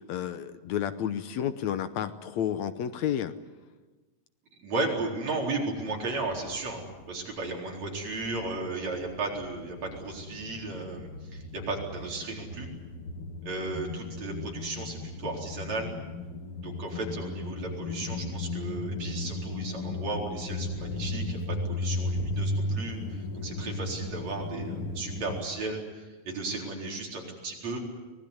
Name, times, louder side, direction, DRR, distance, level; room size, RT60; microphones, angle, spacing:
voice 1, 0.0-3.3, left 9 dB, 70° left, 11 dB, 2.1 m, -31 dB
voice 2, 4.6-12.7 13.4-15.9 16.6-21.4 21.7-27.8, right 3 dB, 60° right, -1 dB, 5.4 m, -35 dB
sound 1, 5.8-7.4 7.7-25.4, left 2 dB, 50° left, 2.1 m, -36 dB
24.5 x 19.5 x 9.7 m, 1.2 s
omnidirectional pair, 3.5 m